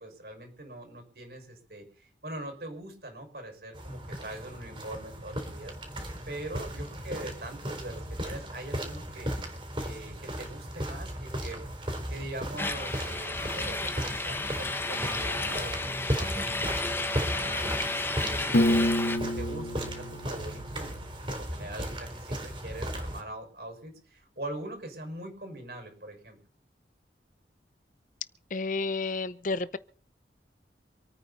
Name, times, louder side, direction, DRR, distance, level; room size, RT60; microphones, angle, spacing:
voice 1, 0.0-5.8 6.3-9.3 9.7-11.6 12.1-15.7 16.1-18.0 18.2-18.9 19.2-26.4, right 1 dB, 60° right, 5.9 m, -42 dB
sound 1, 3.7-23.2, equal, 30° right, 4.2 m, -36 dB
sound 2, 12.6-19.2, left 2 dB, 15° left, 1.1 m, -32 dB
Piano, 18.5-21.5, left 1 dB, 70° left, 1.4 m, -28 dB
voice 2, 28.5-29.8, left 3 dB, 45° left, 0.6 m, -31 dB
27.5 x 9.3 x 4.2 m
head